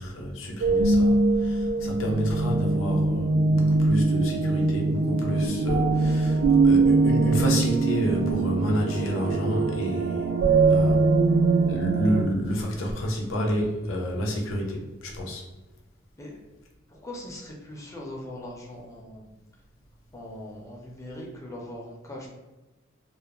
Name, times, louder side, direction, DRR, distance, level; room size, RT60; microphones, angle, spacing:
voice 1, 0.0-10.3 10.6-11.0 11.7-15.4, equal, 90° left, 0 dB, 0.6 m, -29 dB
sound 1, 0.6-12.2, right 3 dB, 90° right, 0.3 m, -22 dB
voice 2, 16.9-19.3 20.1-22.3, left 1 dB, 15° left, -2 dB, 0.4 m, -40 dB
2.3 x 2.0 x 2.9 m, 1.1 s
head